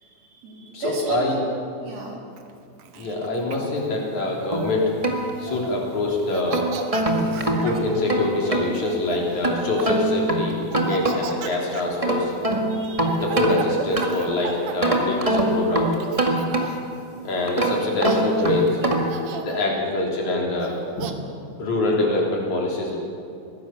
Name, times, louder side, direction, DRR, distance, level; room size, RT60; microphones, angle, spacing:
voice 1, 0.0-1.4 1.8-2.2 7.0-7.6 12.7-13.2 19.6-19.7, right 4 dB, 55° right, -1 dB, 4.4 m, -33 dB
voice 2, 0.7-1.4 3.0-4.9 5.4-6.6 7.6-10.5 10.8-12.3 13.2-15.9 17.2-18.7 19.5-21.0 21.6-23.0, left 2 dB, 70° left, -2 dB, 4.8 m, -24 dB
Laughter, 2.4-4.8 5.3-5.8 6.1-7.9 8.6-10.1 10.7-15.6 16.0-17.0 17.6-17.7 18.0-18.7 19.1-19.6 20.6-21.1, right 7 dB, 90° right, 2.8 m, -35 dB
sound 1, 4.5-5.9 6.3-8.7 9.4-11.5 11.8-14.3 14.8-17.0 17.5-19.2, right 1 dB, 15° right, 1.4 m, -24 dB
22.5 x 16.5 x 7.1 m, 2.6 s
omnidirectional pair, 3.5 m